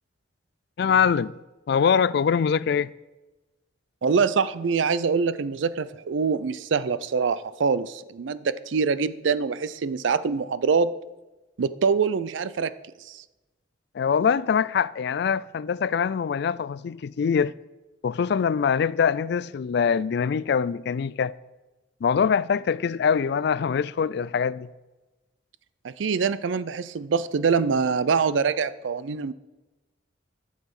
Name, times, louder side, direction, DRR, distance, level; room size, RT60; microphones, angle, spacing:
voice 1, 0.8-1.3 1.7-2.9 13.9-17.5 18.0-21.3 22.0-24.7, left 6 dB, 60° left, 0.3 m, -23 dB
voice 2, 4.0-10.9 11.6-12.7 13.0-13.2 25.8-29.3, right 5 dB, 75° right, 0.5 m, -24 dB
11.5 x 6.6 x 5.3 m
head